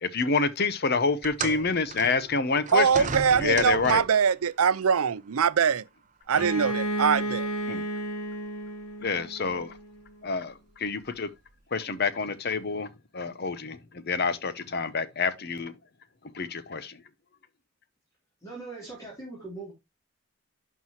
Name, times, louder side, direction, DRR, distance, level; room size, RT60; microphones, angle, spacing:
voice 1, 0.0-3.1 3.4-4.0 7.7-7.8 9.0-9.7 10.2-11.3 11.7-15.7 16.3-17.0, left 4 dB, 50° left, 0.8 m, -28 dB
sound 1, 1.2-4.3 5.3-5.4 6.3-6.4, right 5 dB, 35° right, 0.7 m, -35 dB
voice 2, 2.7-5.9 6.3-7.5, right 7 dB, 85° right, 0.5 m, -23 dB
Bowed string instrument, 6.3-10.0, right 1 dB, 85° left, 2.3 m, -32 dB
voice 3, 18.4-19.7, right 3 dB, 15° left, 3.2 m, -40 dB
11.5 x 4.6 x 3.0 m
head